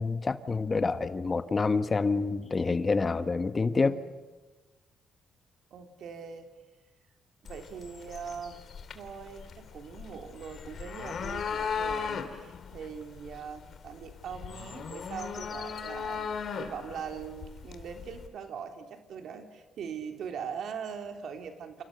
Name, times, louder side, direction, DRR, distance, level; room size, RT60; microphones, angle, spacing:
voice 1, 0.0-3.9, left 4 dB, 30° left, 11 dB, 1.3 m, -27 dB
voice 2, 3.7-4.1 5.7-6.5 7.4-8.6 8.9-21.8, right 6 dB, 70° right, 5 dB, 3.3 m, -41 dB
sound 1, 7.5-18.3, left 6 dB, 55° left, 2.8 m, -38 dB
28.5 x 28.0 x 6.7 m, 1.2 s
cardioid pair, 90°, 0 cm